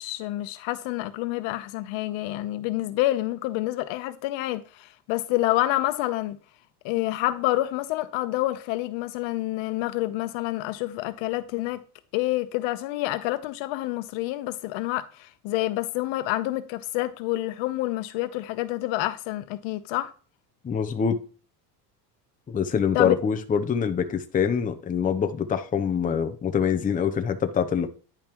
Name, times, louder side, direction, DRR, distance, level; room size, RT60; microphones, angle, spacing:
voice 1, 0.0-6.4 6.8-11.8 12.1-20.1 22.9-23.1, left 16 dB, 70° left, 1.0 m, -28 dB
voice 2, 20.6-21.2 22.5-27.9, left 7 dB, 15° left, 0.7 m, -25 dB
10.5 x 5.4 x 3.0 m
cardioid pair, 125°, 48 cm